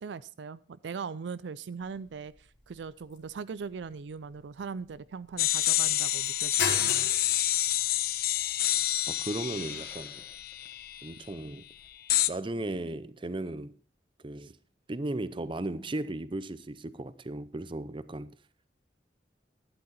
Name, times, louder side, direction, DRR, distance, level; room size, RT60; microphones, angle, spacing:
voice 1, 0.0-7.1, right 5 dB, 80° right, 0.4 m, -40 dB
sound 1, 1.8-11.9, left 4 dB, 75° left, 3.4 m, -42 dB
sound 2, 5.4-11.1 12.1-12.3, left 14 dB, 55° left, 0.6 m, -28 dB
voice 2, 9.1-10.2 11.0-11.7 12.3-13.7 14.2-14.6 14.9-18.3, right 2 dB, 30° right, 0.6 m, -36 dB
Hiss, 9.4-10.8, left 2 dB, 10° left, 1.5 m, -51 dB
12.0 x 10.5 x 4.3 m
head